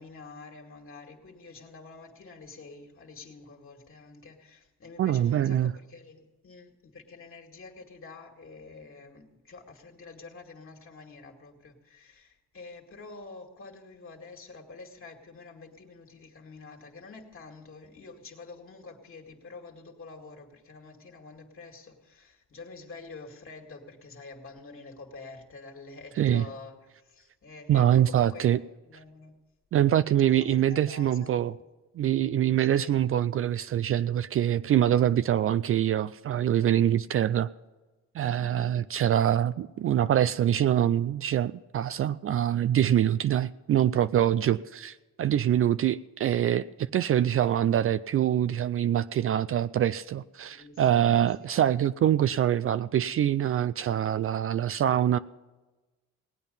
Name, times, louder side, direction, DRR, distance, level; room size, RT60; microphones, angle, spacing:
voice 1, 0.0-29.4 30.3-31.5 32.7-33.0 38.4-38.8 50.4-51.4, left 3 dB, 45° left, 2 dB, 2.1 m, -47 dB
voice 2, 5.0-5.7 26.2-26.5 27.7-28.6 29.7-31.5 32.0-37.5 38.1-55.2, right 11 dB, 45° right, 15 dB, 0.4 m, -24 dB
18.5 x 8.9 x 5.5 m, 1.2 s
cardioid pair, 90°, 30 cm